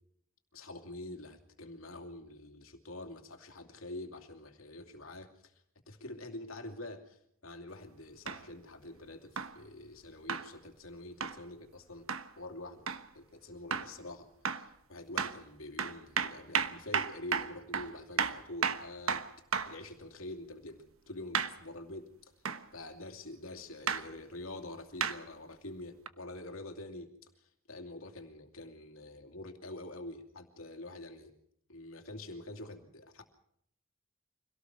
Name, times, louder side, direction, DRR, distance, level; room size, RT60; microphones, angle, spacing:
voice 1, 0.5-12.1 12.4-12.9 13.1-19.3 19.7-22.1 22.7-27.1 27.4-31.4 31.7-33.2, left 2 dB, 85° left, 5 dB, 2.7 m, -46 dB
sound 1, 8.3-8.4 9.4-9.6 10.3-10.5 11.2-11.4 12.1-12.3 12.9-13.0 13.7-13.9 14.4-14.7 15.2-15.4 15.8-19.8 21.3-21.6 22.4-22.6 23.9-24.1 25.0-25.2 26.1-26.2, right 6 dB, 85° right, 1.1 m, -33 dB
25.5 x 18.0 x 6.1 m, 0.70 s
head